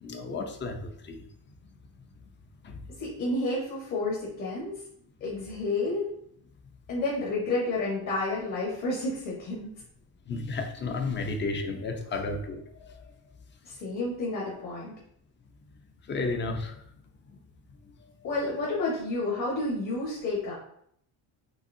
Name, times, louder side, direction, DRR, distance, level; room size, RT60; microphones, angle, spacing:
voice 1, 0.0-1.2 2.6-2.8 10.3-13.0 16.1-16.8 17.9-18.0, left 3 dB, 25° left, 5 dB, 0.6 m, -33 dB
voice 2, 3.0-4.8 5.2-6.0 6.9-9.7 13.6-14.9 18.2-20.5, left 2 dB, 45° left, -5 dB, 1.4 m, -30 dB
5.5 x 3.4 x 2.6 m, 0.69 s
cardioid pair, 155°, 42 cm